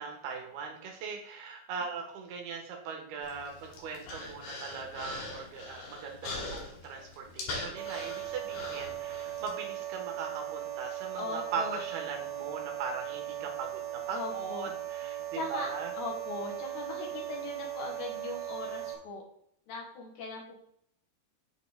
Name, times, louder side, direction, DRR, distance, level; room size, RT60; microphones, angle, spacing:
voice 1, 0.0-15.9, right 5 dB, 85° right, 2 dB, 3.5 m, -40 dB
Human voice, 3.2-9.5, left 2 dB, 85° left, 4.1 m, -42 dB
sound 1, 7.8-18.9, right 12 dB, 65° right, 2.6 m, -38 dB
voice 2, 11.2-11.8 14.1-14.7 15.3-15.7 16.0-19.2 19.7-20.7, left 3 dB, 70° left, -1 dB, 3.5 m, -39 dB
8.4 x 5.5 x 3.9 m, 0.71 s
omnidirectional pair, 4.4 m